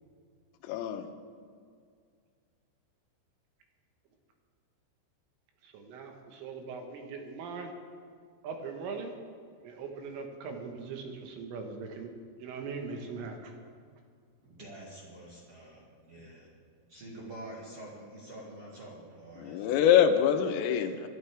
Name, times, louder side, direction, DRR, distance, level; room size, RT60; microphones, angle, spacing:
voice 1, 0.6-1.0 19.4-21.1, left 9 dB, 85° left, 7 dB, 3.5 m, -24 dB
voice 2, 5.6-7.7 8.4-9.1 9.6-12.1 12.4-13.5, right 5 dB, 75° right, 3 dB, 3.7 m, -40 dB
voice 3, 14.4-19.8, right 1 dB, 45° right, -5 dB, 2.1 m, -47 dB
23.5 x 12.0 x 3.4 m, 2.1 s
omnidirectional pair, 5.9 m